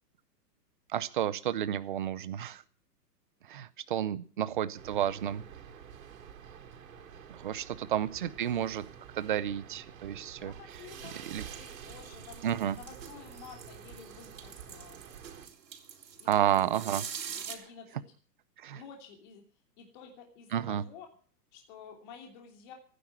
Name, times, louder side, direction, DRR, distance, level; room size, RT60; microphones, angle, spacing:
voice 1, 0.9-2.6 3.5-5.4 7.3-8.8 9.1-10.5 11.3-11.4 12.4-12.8 16.3-17.0 18.6-18.8 20.5-20.8, right 10 dB, 30° right, 15 dB, 0.6 m, -31 dB
sound 1, 4.8-15.5, right 8 dB, 55° right, 4.2 m, -49 dB
voice 2, 7.7-8.2 10.3-12.4 12.7-15.0 15.9-17.0 17.4-18.0 18.7-21.1 21.5-22.7, left 7 dB, 30° left, 2 dB, 2.9 m, -51 dB
sound 2, 10.7-17.6, right 8 dB, 85° right, 3.9 m, -46 dB
17.0 x 10.0 x 7.3 m, 0.42 s
hypercardioid pair, 175°, 49 cm